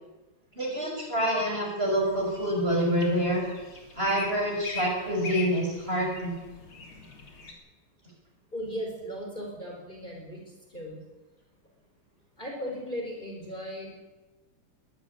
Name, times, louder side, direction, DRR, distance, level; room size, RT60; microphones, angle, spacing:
voice 1, 0.6-3.4 4.0-6.3, equal, 25° right, 0 dB, 6.2 m, -27 dB
sound 1, 1.8-7.5, left 3 dB, 70° left, 4.4 m, -42 dB
voice 2, 8.5-10.4 10.7-11.0 12.4-13.9, equal, 20° left, 0 dB, 4.7 m, -37 dB
21.5 x 12.5 x 9.8 m, 1.1 s
omnidirectional pair, 2.4 m